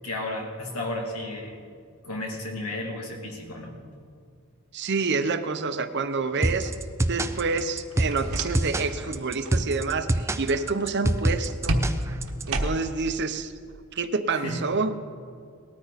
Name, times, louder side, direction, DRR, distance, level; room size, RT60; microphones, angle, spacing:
voice 1, 0.0-1.6 2.0-3.8 14.3-14.7, left 1 dB, 85° left, 0 dB, 2.6 m, -33 dB
voice 2, 4.7-6.7 7.1-11.8 12.5-13.5 13.9-14.9, right 4 dB, 50° right, 10 dB, 0.8 m, -28 dB
sound 1, 6.4-12.4, right 1 dB, 15° right, 0.4 m, -26 dB
sound 2, 7.9-8.9 9.2-9.6 11.7-13.1, right 1 dB, 70° right, 1.2 m, -29 dB
19.5 x 13.5 x 4.1 m, 2.2 s
head